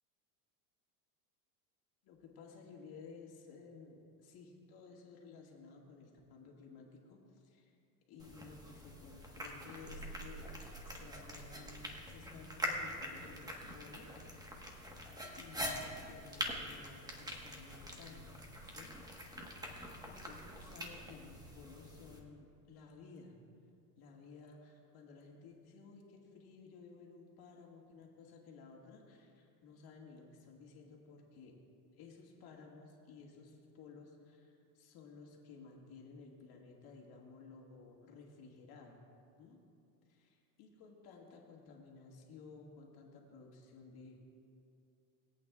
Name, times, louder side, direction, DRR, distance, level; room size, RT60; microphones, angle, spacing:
voice 1, 2.0-7.8 8.1-10.5 10.8-15.0 15.4-19.6 20.1-23.4 24.0-31.6 32.0-39.0 39.4-39.6 40.1-44.2, left 4 dB, 50° left, -1 dB, 2.1 m, -55 dB
sound 1, 8.2-22.2, equal, 10° right, 1.3 m, -45 dB
21.0 x 8.7 x 2.4 m, 2.5 s
supercardioid pair, 115°, 49 cm